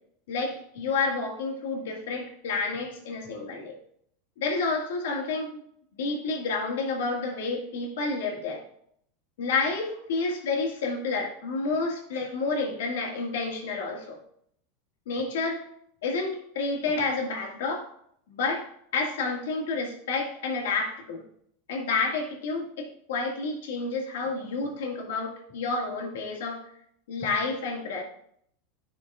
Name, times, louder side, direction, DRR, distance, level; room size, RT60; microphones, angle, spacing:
voice 1, 0.3-3.8 4.4-5.6 5.9-8.6 9.4-14.2 15.1-15.6 16.0-17.9 18.3-18.7 18.9-21.2 21.7-26.7 27.1-28.0, left 3 dB, 90° left, 0 dB, 1.9 m, -30 dB
11.0 x 5.8 x 2.4 m, 0.69 s
supercardioid pair, 150°, 0 cm